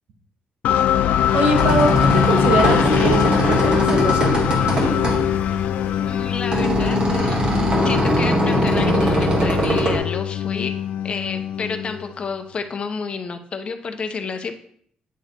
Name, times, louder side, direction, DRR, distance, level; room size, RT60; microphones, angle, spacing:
sound 1, 0.6-12.4, left 10 dB, 85° left, 0.4 m, -22 dB
sound 2, 1.3-10.0, right 1 dB, 35° right, 1.6 m, -21 dB
voice 1, 1.3-4.3, right 2 dB, 85° right, 2 dB, 1.5 m, -22 dB
voice 2, 6.1-10.7 11.0-14.6, left 5 dB, 40° left, 7 dB, 0.7 m, -30 dB
9.2 x 3.1 x 4.4 m, 0.63 s
cardioid pair, 115°, 3 cm